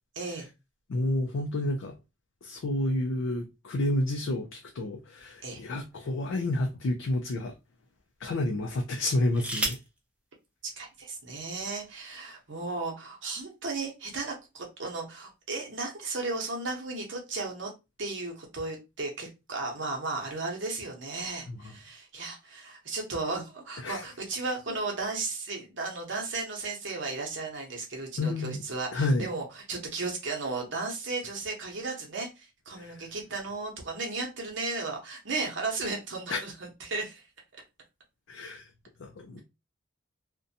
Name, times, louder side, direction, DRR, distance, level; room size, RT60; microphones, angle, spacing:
voice 1, 0.1-0.5 5.4-5.6 10.8-17.7 18.0-37.2, right 3 dB, 65° right, 0.8 m, -35 dB
voice 2, 0.9-2.0 2.4-7.5 8.2-9.8 21.5-21.6 23.8-24.0 24.7-24.8 28.2-28.6 28.9-29.3 32.7-33.0 36.3-36.4 38.3-38.7 39.0-39.4, left 1 dB, 85° left, 0.4 m, -30 dB
sound 1, 5.2-6.4 7.2-7.3 8.9-10.0 11.1-11.2 11.5-11.9, right 1 dB, 5° right, 0.4 m, -36 dB
2.5 x 2.2 x 2.6 m
head